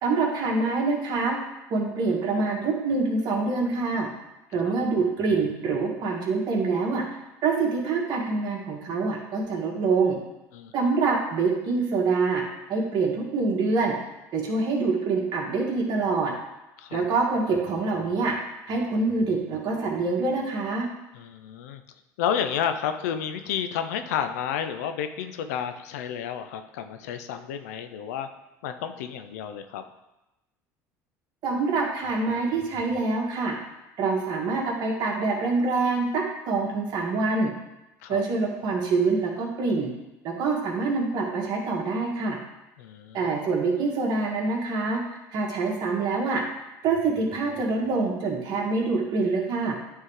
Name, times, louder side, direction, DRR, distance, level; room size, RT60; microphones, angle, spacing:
voice 1, 0.0-1.4 1.7-4.1 4.5-7.0 7.4-10.2 10.7-12.4 12.7-13.9 14.3-16.3 16.9-18.3 18.7-20.9 31.4-33.5 34.0-37.5 38.1-39.9 40.2-42.4 43.1-45.0 45.3-46.4 46.8-49.7, right 3 dB, 55° right, -1 dB, 1.6 m, -25 dB
voice 2, 21.1-21.8 22.2-28.3 28.6-29.8 38.0-38.2 42.8-43.2, left 8 dB, 85° left, 8 dB, 0.5 m, -31 dB
9.2 x 3.7 x 3.2 m, 0.95 s
supercardioid pair, 85°, 8 cm